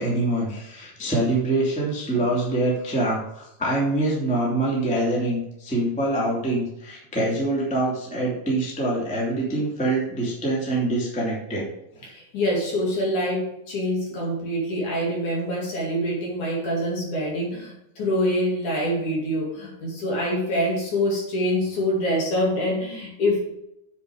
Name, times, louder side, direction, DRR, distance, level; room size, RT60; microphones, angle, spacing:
voice 1, 0.0-11.7, right 2 dB, 5° left, -4 dB, 1.6 m, -25 dB
voice 2, 12.0-23.5, equal, 55° left, -3 dB, 3.5 m, -25 dB
7.4 x 7.0 x 4.9 m, 0.82 s
omnidirectional pair, 4.4 m